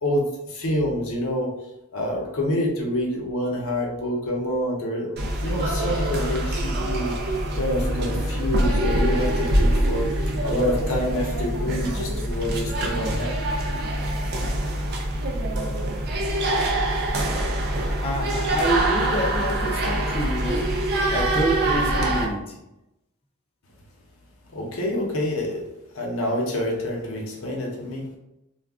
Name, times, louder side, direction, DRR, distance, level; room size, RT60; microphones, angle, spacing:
voice 1, 0.0-1.5 1.9-7.2 7.5-13.3 24.5-25.6 25.9-28.1, left 1 dB, 65° left, -1 dB, 0.7 m, -27 dB
sound 1, 5.2-22.3, right 1 dB, 45° right, 0.4 m, -24 dB
voice 2, 18.0-20.6 21.1-22.6, equal, 25° left, 0 dB, 0.4 m, -27 dB
2.4 x 2.2 x 3.5 m, 0.90 s
head